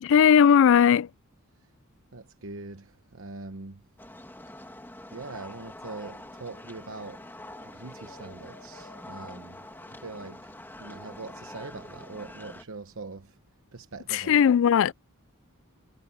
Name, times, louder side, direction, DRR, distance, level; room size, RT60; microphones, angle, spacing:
voice 1, 0.0-1.1 14.1-14.9, left 8 dB, 60° left, 0.3 m, -18 dB
voice 2, 2.1-3.8 5.1-7.2 7.7-9.6 10.0-10.4 10.8-13.3 13.7-14.4, right 3 dB, 60° right, 1.0 m, -42 dB
sound 1, 4.0-12.6, left 1 dB, 10° left, 2.4 m, -45 dB
Wind instrument woodwind instrument, 6.1-11.6, left 3 dB, 85° left, 3.7 m, -58 dB
head